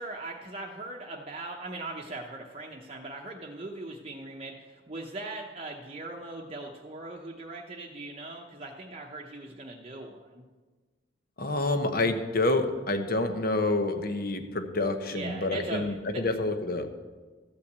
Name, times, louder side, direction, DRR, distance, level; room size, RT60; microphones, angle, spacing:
voice 1, 0.0-10.4 15.1-16.2, right 2 dB, 35° right, -1 dB, 0.8 m, -40 dB
voice 2, 11.4-16.9, left 2 dB, 55° left, 7 dB, 1.0 m, -28 dB
13.5 x 5.8 x 8.0 m, 1.4 s
head